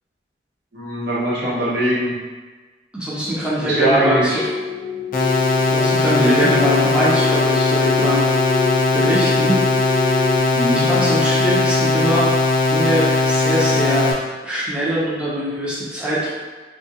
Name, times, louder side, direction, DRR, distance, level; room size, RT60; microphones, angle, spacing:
voice 1, 0.7-2.1 3.6-4.4 6.2-6.5 10.5-10.9, right 1 dB, 65° right, -7 dB, 0.8 m, -20 dB
voice 2, 2.9-4.4 5.7-8.2 8.9-10.3 10.7-12.3 12.7-14.1 14.4-16.3, equal, 5° right, -8 dB, 0.5 m, -22 dB
sound 1, 3.9-10.4, left 6 dB, 75° left, 0.7 m, -28 dB
sound 2, 5.1-14.1, left 3 dB, 50° left, 0.4 m, -18 dB
2.3 x 2.3 x 2.7 m, 1.3 s
head